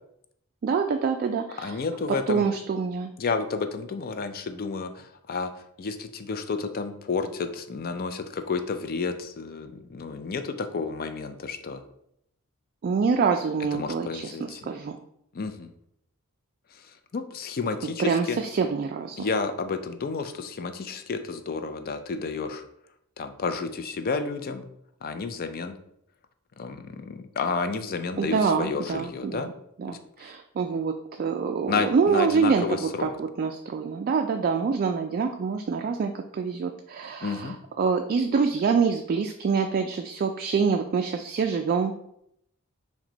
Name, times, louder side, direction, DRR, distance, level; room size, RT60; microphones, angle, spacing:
voice 1, 0.6-1.8 2.3-3.1 12.8-15.0 18.0-19.3 28.2-29.5 29.8-30.9 31.2-41.9, right 5 dB, 45° right, 4 dB, 0.3 m, -26 dB
voice 2, 1.6-2.5 3.2-5.5 5.8-11.8 13.7-14.6 15.3-15.7 17.1-18.4 19.2-22.6 23.2-24.7 25.0-25.8 26.6-29.5 29.9-30.0 31.7-33.1 37.2-37.6, left 4 dB, 45° left, 8 dB, 0.4 m, -31 dB
5.9 x 2.2 x 3.9 m, 0.74 s
head